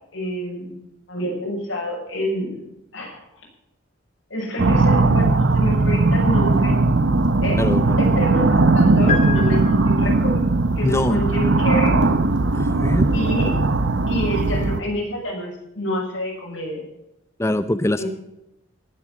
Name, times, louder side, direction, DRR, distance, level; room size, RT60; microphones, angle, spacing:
voice 1, 0.1-0.8 1.1-2.6 2.9-3.2 4.3-6.8 7.4-7.7 8.0-10.5 10.8-12.0 13.1-13.6 14.1-16.8 18.0-18.1, equal, 85° left, -1 dB, 6.6 m, -27 dB
sound 1, 4.6-14.8, right 3 dB, 75° right, 0.8 m, -18 dB
voice 2, 7.6-8.0 10.8-11.3 12.5-13.1 17.4-18.0, left 1 dB, 15° left, 12 dB, 0.5 m, -22 dB
sound 2, 9.1-10.4, left 6 dB, 40° left, 2.6 m, -28 dB
19.0 x 8.5 x 6.2 m, 0.87 s
head